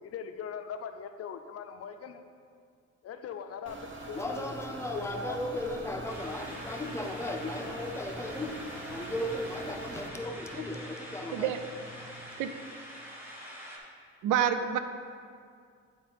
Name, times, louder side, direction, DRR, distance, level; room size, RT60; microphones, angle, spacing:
voice 1, 0.0-2.2 3.0-4.5 4.9-5.4, left 7 dB, 50° left, 7 dB, 0.5 m, -40 dB
sound 1, 3.7-10.1, right 2 dB, 40° right, 0.9 m, -44 dB
voice 2, 4.0-11.6 11.9-12.3, left 1 dB, 10° left, 3 dB, 0.6 m, -36 dB
sound 2, 6.1-13.8, equal, 5° right, 1.3 m, -45 dB
voice 3, 14.2-14.8, right 9 dB, 85° right, 9 dB, 0.5 m, -27 dB
8.5 x 4.3 x 4.0 m, 2.2 s
cardioid pair, 90°, 30 cm